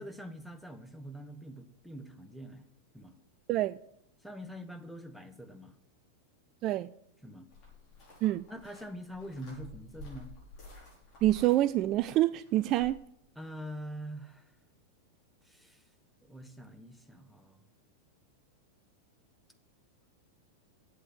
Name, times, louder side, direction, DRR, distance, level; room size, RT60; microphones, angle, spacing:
voice 1, 0.0-2.6 2.9-3.1 4.2-5.7 7.2-7.5 8.5-10.3 13.4-14.5 15.5-15.8 16.3-17.6, equal, ahead, 7 dB, 1.1 m, -44 dB
sound 1, 7.5-12.9, left 2 dB, 30° left, 5.8 m, -52 dB
voice 2, 11.2-13.0, right 15 dB, 40° right, 15 dB, 0.3 m, -26 dB
8.2 x 8.0 x 7.7 m, 0.75 s
figure-of-eight pair, 90°, 0 cm